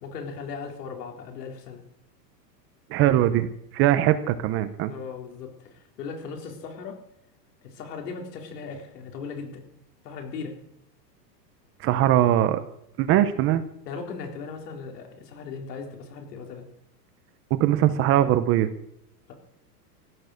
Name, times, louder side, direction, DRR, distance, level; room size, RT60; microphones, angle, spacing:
voice 1, 0.0-1.8 4.9-7.0 7.6-9.6 10.0-10.5 13.9-16.7 19.3-19.4, left 5 dB, 70° left, 2 dB, 4.2 m, -38 dB
voice 2, 2.9-3.5 3.7-4.9 11.8-12.6 13.0-13.6 17.5-18.7, right 12 dB, 25° right, 11 dB, 0.8 m, -21 dB
15.5 x 11.0 x 6.5 m, 0.75 s
supercardioid pair, 150°, 49 cm